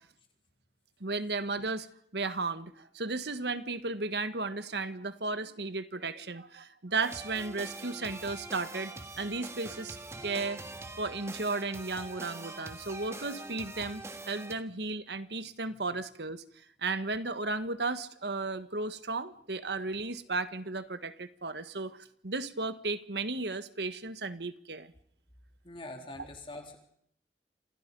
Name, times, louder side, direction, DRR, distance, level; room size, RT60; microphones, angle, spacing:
voice 1, 1.0-1.9 2.1-10.6 11.0-16.4 16.8-24.9, right 3 dB, 70° right, 1.5 m, -34 dB
sound 1, 7.0-14.5, right 2 dB, 15° right, 1.6 m, -43 dB
voice 2, 25.6-26.8, left 2 dB, 30° left, 3.5 m, -43 dB
28.0 x 28.0 x 5.4 m
head